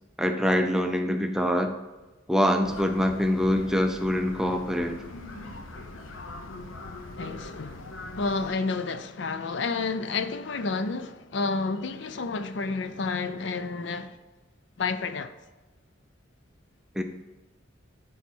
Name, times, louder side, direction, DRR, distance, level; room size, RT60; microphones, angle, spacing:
voice 1, 0.2-1.8 2.3-5.0 17.0-17.1, equal, 5° right, 0.4 m, -24 dB
sound 1, 2.6-8.5, left 2 dB, 90° left, 0.8 m, -41 dB
voice 2, 7.2-14.2 14.8-15.3, left 4 dB, 65° left, 0.5 m, -30 dB
10.5 x 4.1 x 4.4 m
head